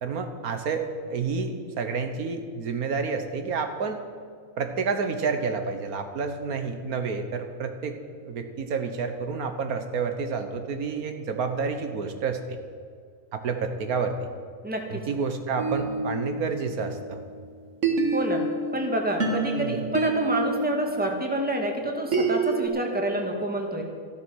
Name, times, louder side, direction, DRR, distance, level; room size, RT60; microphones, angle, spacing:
voice 1, 0.0-4.0 4.6-8.0 8.2-12.6 13.3-14.1 14.9-17.2 19.5-19.8, right 5 dB, 85° right, 7 dB, 1.6 m, -29 dB
voice 2, 14.6-15.0 18.1-18.5 18.7-23.8, right 1 dB, 5° right, 1 dB, 1.8 m, -28 dB
sound 1, 15.6-17.3 17.8-22.7, right 3 dB, 55° right, 2.0 m, -28 dB
13.5 x 12.5 x 6.3 m, 2.1 s
omnidirectional pair, 1.5 m